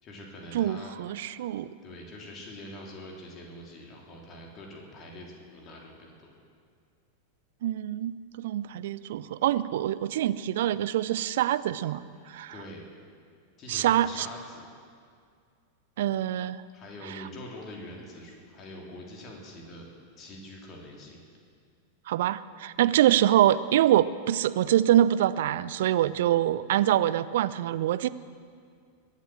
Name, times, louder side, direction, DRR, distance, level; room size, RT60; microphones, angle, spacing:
voice 1, 0.0-1.0 1.8-6.3 12.5-12.8 13.6-14.7 16.7-19.9 20.2-21.2 26.0-26.1, left 1 dB, 30° left, -1 dB, 3.4 m, -44 dB
voice 2, 0.5-1.7 7.6-12.0 12.3-12.5 13.7-14.3 16.0-16.6 17.1-17.2 22.1-28.1, right 12 dB, 55° right, 16 dB, 0.5 m, -25 dB
22.0 x 8.4 x 7.6 m, 2.2 s
figure-of-eight pair, 90°, 0 cm